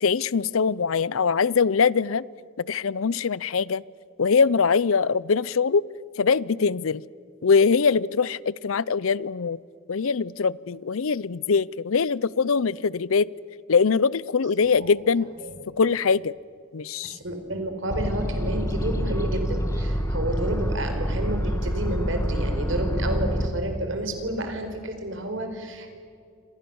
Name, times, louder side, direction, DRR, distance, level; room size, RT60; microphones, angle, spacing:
voice 1, 0.0-2.3 2.6-3.8 4.2-5.8 6.2-7.0 7.4-9.6 9.9-13.3 13.7-15.3 15.8-16.3 16.7-17.2, left 5 dB, 70° left, 22 dB, 0.6 m, -22 dB
voice 2, 17.0-26.0, right 1 dB, 60° right, 6 dB, 4.6 m, -30 dB
sound 1, 17.9-23.5, equal, 15° left, 1.8 m, -27 dB
29.0 x 26.5 x 7.0 m, 2.3 s
head